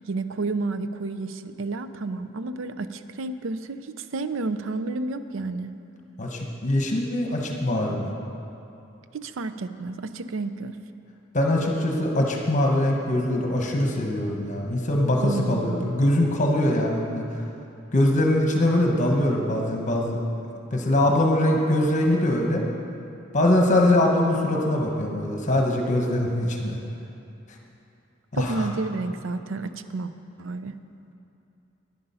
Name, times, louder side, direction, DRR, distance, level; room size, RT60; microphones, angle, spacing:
voice 1, 0.1-5.7 9.1-10.8 15.2-15.9 28.3-30.1 30.4-30.8, right 3 dB, 80° right, 11 dB, 0.5 m, -31 dB
voice 2, 6.2-8.1 11.3-17.2 17.9-20.2 20.7-22.6 23.3-26.8 28.3-28.7, left 1 dB, 40° left, 0 dB, 1.1 m, -22 dB
11.0 x 9.9 x 5.6 m, 2.7 s
head